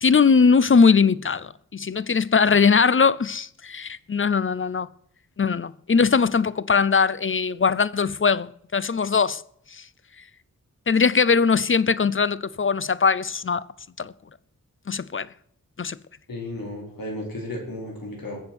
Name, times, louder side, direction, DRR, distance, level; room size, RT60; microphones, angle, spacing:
voice 1, 0.0-4.9 5.4-9.4 9.7-9.8 10.9-13.7 14.0-14.1 14.9-15.3 15.8-16.0, left 5 dB, 35° left, 0.6 m, -20 dB
voice 2, 16.3-18.4, left 1 dB, 80° left, 4.3 m, -34 dB
21.0 x 7.2 x 6.2 m
wide cardioid pair, 90°, 34 cm